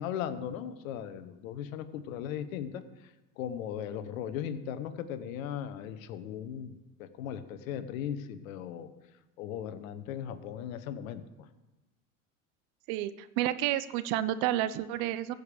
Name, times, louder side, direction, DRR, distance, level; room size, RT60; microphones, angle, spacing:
voice 1, 0.0-2.8 3.4-8.9 9.4-11.2, left 9 dB, 70° left, 11 dB, 1.1 m, -37 dB
voice 2, 12.9-15.3, right 13 dB, 60° right, 15 dB, 0.8 m, -30 dB
15.5 x 5.3 x 6.7 m, 1.0 s
hypercardioid pair, 75°, 42 cm